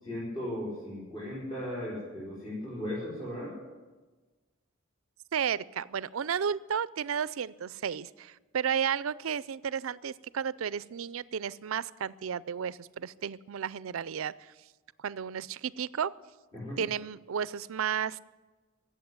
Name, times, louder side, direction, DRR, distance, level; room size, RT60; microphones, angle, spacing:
voice 1, 0.0-3.6 16.5-16.8, left 1 dB, 25° left, -8 dB, 4.9 m, -37 dB
voice 2, 5.3-14.5 15.0-16.1 16.8-18.2, right 7 dB, 75° right, 19 dB, 0.4 m, -33 dB
16.5 x 7.4 x 9.6 m, 1.3 s
head